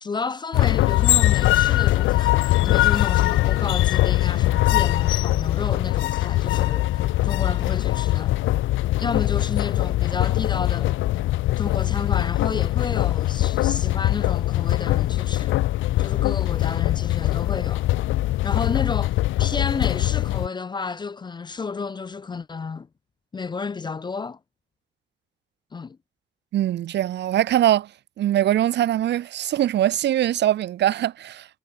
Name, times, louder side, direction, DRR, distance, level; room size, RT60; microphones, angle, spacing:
voice 1, 0.0-8.3 8.9-11.0 11.6-15.6 16.0-17.9 18.4-22.9 23.3-24.4 25.7-26.0, left 4 dB, 20° left, 0.4 m, -31 dB
sound 1, 0.5-20.5, left 16 dB, 80° left, 0.6 m, -22 dB
voice 2, 26.5-27.9 28.2-31.6, right 12 dB, 60° right, 0.5 m, -22 dB
cardioid pair, 90°, 20 cm